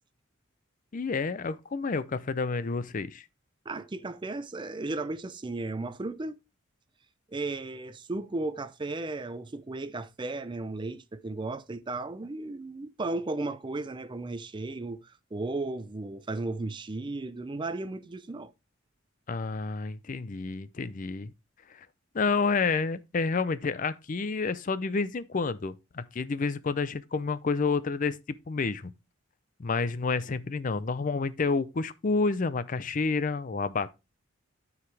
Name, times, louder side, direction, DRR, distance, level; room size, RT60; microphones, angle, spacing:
voice 1, 0.9-3.2 19.3-21.3 21.7-21.9 22.1-28.2 28.5-28.9 29.6-34.0, left 4 dB, 40° left, 0.5 m, -29 dB
voice 2, 3.7-6.4 7.3-18.5, right 2 dB, 25° right, 0.4 m, -35 dB
13.0 x 4.8 x 3.2 m
head